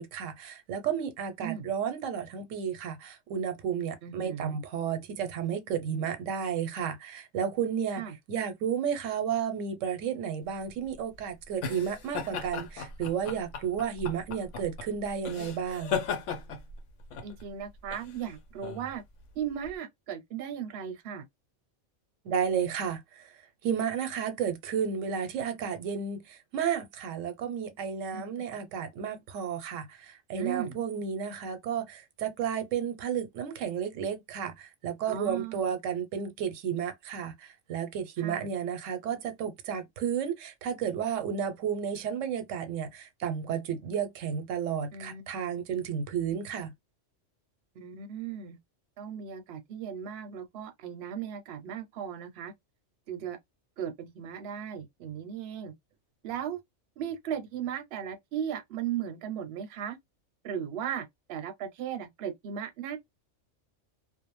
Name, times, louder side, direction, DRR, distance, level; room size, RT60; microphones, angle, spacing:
voice 1, 0.0-8.0 8.3-16.0 22.2-23.3 23.6-46.7, right 7 dB, 90° right, 1.0 m, -32 dB
voice 2, 4.0-4.6 8.0-8.2 17.2-19.0 19.4-21.3 28.1-28.2 30.4-30.8 35.1-35.6 38.2-38.5 44.9-45.3 47.8-48.6 49.0-52.5 53.1-53.4 53.8-55.7 56.2-56.6 57.0-60.0 60.4-63.0, right 9 dB, 60° right, 0.7 m, -36 dB
sound 1, 10.5-19.7, left 6 dB, 75° left, 1.0 m, -37 dB
2.5 x 2.0 x 3.0 m
omnidirectional pair, 1.3 m